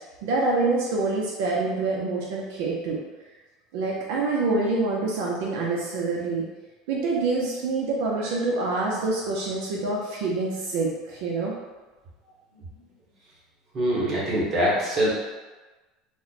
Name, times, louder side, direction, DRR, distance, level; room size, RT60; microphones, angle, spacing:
voice 1, 0.2-3.0 3.7-6.4 6.9-11.5, right 3 dB, 70° right, -3 dB, 0.6 m, -26 dB
voice 2, 13.7-15.1, equal, 25° right, -7 dB, 1.1 m, -23 dB
3.0 x 2.1 x 3.9 m, 1.2 s
cardioid pair, 165°, 0 cm